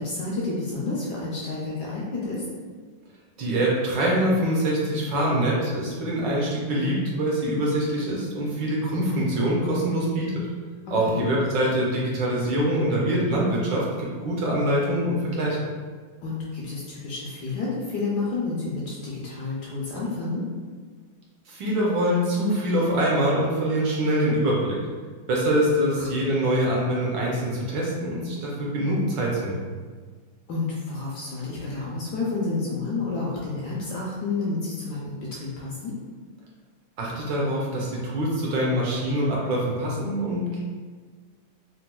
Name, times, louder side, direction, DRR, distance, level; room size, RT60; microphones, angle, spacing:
voice 1, 0.0-2.4 11.1-11.3 16.2-20.4 26.0-26.1 30.5-35.9, left 3 dB, 70° left, -5 dB, 1.0 m, -30 dB
voice 2, 3.4-10.3 10.9-15.6 21.5-24.8 25.3-29.7 37.0-40.6, right 1 dB, 70° right, -4 dB, 1.3 m, -24 dB
4.1 x 2.2 x 2.2 m, 1.5 s
omnidirectional pair, 2.1 m